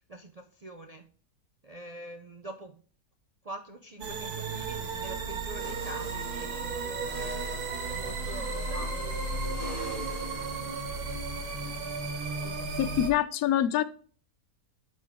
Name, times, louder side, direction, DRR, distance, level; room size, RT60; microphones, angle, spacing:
voice 1, 0.1-1.1 1.6-2.8 3.4-7.4 7.9-9.2 11.0-11.1 12.4-12.8, right 1 dB, 45° right, 0.5 m, -45 dB
sound 1, 4.0-13.1, right 4 dB, 90° right, 1.8 m, -34 dB
sound 2, 5.6-10.6, left 1 dB, 25° left, 2.0 m, -43 dB
voice 2, 12.8-13.8, left 11 dB, 75° left, 1.1 m, -25 dB
11.5 x 4.1 x 3.5 m
omnidirectional pair, 1.6 m